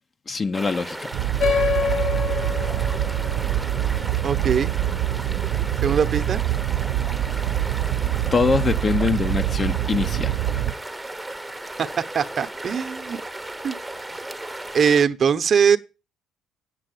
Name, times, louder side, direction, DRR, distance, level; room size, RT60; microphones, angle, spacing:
voice 1, 0.3-1.1 8.3-10.3, left 4 dB, 35° left, 0.6 m, -23 dB
sound 1, 0.5-15.1, right 1 dB, 5° right, 0.8 m, -35 dB
sound 2, 1.1-10.7, right 13 dB, 80° right, 0.5 m, -25 dB
sound 3, 1.4-6.3, left 6 dB, 70° left, 1.8 m, -28 dB
voice 2, 4.2-4.7 5.8-6.4 12.1-13.2 13.6-13.7 14.7-15.8, right 7 dB, 45° right, 0.8 m, -21 dB
8.8 x 7.5 x 7.7 m
cardioid pair, 110°, 0 cm